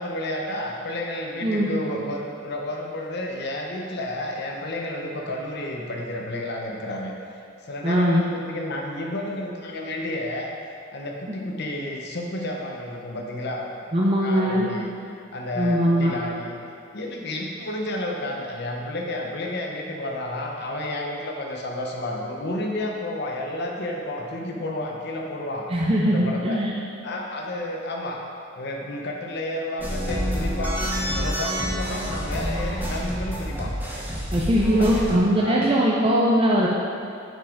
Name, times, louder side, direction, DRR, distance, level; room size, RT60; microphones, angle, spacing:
voice 1, 0.0-7.1 7.6-10.5 10.9-13.7 14.2-14.9 15.3-16.6 16.9-25.7 26.1-26.6 27.0-28.2 28.6-30.9 31.1-33.7 34.8-35.7, left 1 dB, 55° left, 0 dB, 0.7 m, -31 dB
voice 2, 7.8-8.2 11.3-11.4 13.9-14.7 15.6-16.1 25.7-26.7 34.3-36.7, equal, 25° right, -4 dB, 0.5 m, -20 dB
sound 1, 29.8-35.2, equal, 10° right, 1.0 m, -28 dB
6.4 x 5.0 x 5.0 m, 2.4 s
head